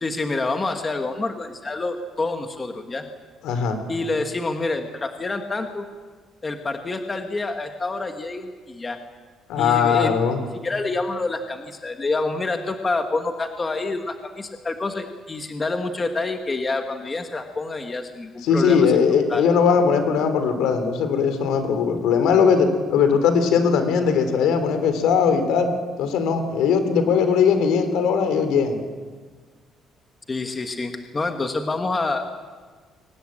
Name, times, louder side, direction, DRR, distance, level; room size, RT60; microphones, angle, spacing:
voice 1, 0.0-3.1 3.9-5.9 6.4-9.0 9.6-10.1 10.6-18.9 19.3-19.5 30.3-32.2, left 3 dB, 15° left, 5 dB, 1.2 m, -27 dB
voice 2, 3.4-3.8 9.5-10.4 18.4-25.7 26.0-28.8, left 6 dB, 75° left, 8 dB, 3.5 m, -19 dB
23.0 x 18.5 x 8.8 m, 1.4 s
cardioid pair, 180°, 0 cm